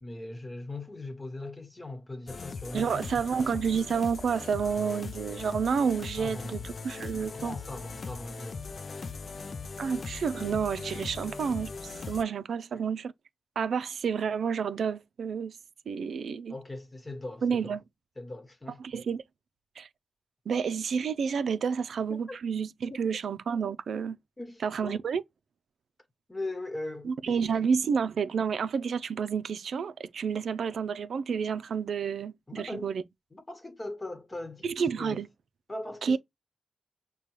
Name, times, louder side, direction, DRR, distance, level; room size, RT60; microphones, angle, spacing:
voice 1, 0.0-3.2 6.2-6.7 7.2-8.6 16.5-17.8 18.2-18.8 22.1-22.4 24.4-25.0 26.3-27.6 32.5-32.9 33.3-34.7 34.9-35.2 35.7-36.2, left 2 dB, 20° left, 1.3 m, -40 dB
sound 1, 2.3-12.2, left 4 dB, 55° left, 0.4 m, -40 dB
voice 2, 2.7-7.6 9.8-13.1 13.6-15.6 15.9-16.5 17.4-17.8 18.8-19.2 19.8-19.9 20.5-24.2 24.6-25.2 27.0-33.0 34.6-35.3 36.0-36.2, right 6 dB, 80° right, 0.4 m, -30 dB
6.6 x 2.3 x 3.1 m
wide cardioid pair, 95°, 0 cm